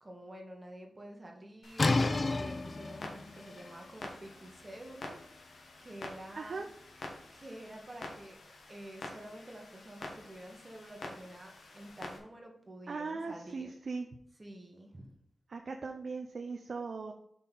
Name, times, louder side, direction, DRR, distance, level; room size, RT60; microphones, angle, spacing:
voice 1, 0.0-5.2 5.8-6.6 7.3-13.7 14.4-15.1, right 1 dB, 25° right, 1 dB, 1.4 m, -49 dB
Clock, 1.6-12.2, left 2 dB, 90° left, 1.4 m, -48 dB
sound 1, 1.8-7.4, left 2 dB, 35° left, 0.4 m, -34 dB
voice 2, 6.4-6.7 12.9-14.1 15.5-17.1, right 4 dB, 60° right, 3 dB, 0.7 m, -39 dB
5.7 x 4.4 x 5.4 m, 0.74 s
wide cardioid pair, 110°, 0 cm